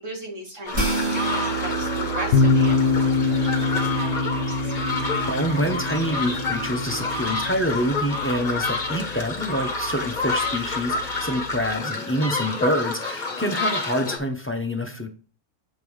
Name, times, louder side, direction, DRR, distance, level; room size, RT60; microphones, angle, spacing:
voice 1, 0.0-4.8, right 2 dB, 55° right, 0 dB, 2.4 m, -38 dB
sound 1, 0.7-14.2, left 3 dB, 35° left, 1.1 m, -29 dB
sound 2, 0.7-7.2, right 4 dB, 25° right, 1.6 m, -30 dB
sound 3, 2.3-11.7, left 4 dB, 85° left, 1.2 m, -26 dB
voice 2, 5.3-15.1, equal, 10° left, 4 dB, 0.6 m, -26 dB
7.5 x 3.7 x 4.7 m, 0.38 s
omnidirectional pair, 1.6 m